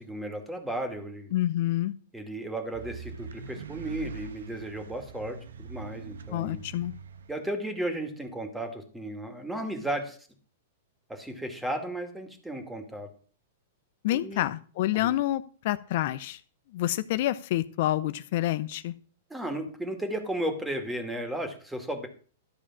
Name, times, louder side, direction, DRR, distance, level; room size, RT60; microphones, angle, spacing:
voice 1, 0.0-1.3 2.1-6.7 7.3-10.2 11.1-13.1 14.1-14.5 14.9-15.1 19.3-22.1, right 1 dB, 5° right, 6 dB, 2.3 m, -34 dB
voice 2, 1.3-1.9 6.3-6.9 14.0-16.4 16.7-18.9, left 14 dB, 60° left, 14 dB, 0.6 m, -28 dB
sound 1, 2.7-7.3, right 4 dB, 80° right, 1.1 m, -42 dB
12.5 x 4.9 x 7.3 m, 0.41 s
hypercardioid pair, 120°, 0 cm